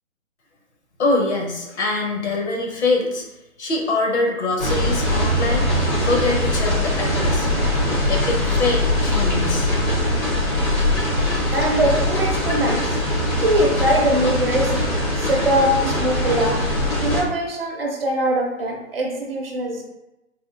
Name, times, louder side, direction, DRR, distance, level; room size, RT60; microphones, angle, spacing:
voice 1, 1.0-3.2 3.6-5.7 6.0-7.5 8.1-9.7, left 2 dB, 55° left, -1 dB, 0.9 m, -23 dB
sound 1, 4.6-17.2, left 1 dB, 75° left, 1.5 m, -21 dB
voice 2, 11.5-13.0 13.4-16.6 17.0-19.8, right 1 dB, 45° right, 0 dB, 0.6 m, -22 dB
3.6 x 2.4 x 2.4 m, 0.96 s
figure-of-eight pair, 145°, 41 cm